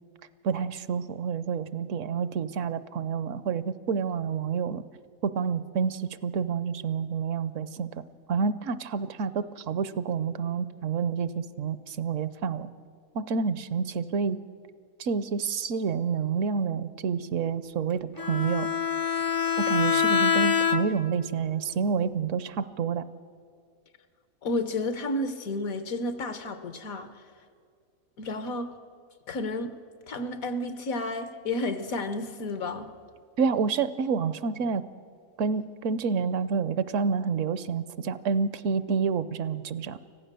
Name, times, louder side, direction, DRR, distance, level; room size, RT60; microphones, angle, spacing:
voice 1, 0.4-4.8 5.2-8.0 8.3-12.7 13.1-14.4 15.0-18.7 19.6-23.0 33.4-34.8 35.4-40.0, right 6 dB, 70° right, 15 dB, 1.0 m, -28 dB
Bowed string instrument, 18.2-21.2, left 7 dB, 35° left, 0.3 m, -25 dB
voice 2, 24.4-27.1 28.2-28.7 29.3-29.7 30.1-32.9, left 2 dB, 75° left, 10 dB, 1.5 m, -31 dB
25.0 x 15.5 x 6.7 m, 2.2 s
omnidirectional pair, 1.5 m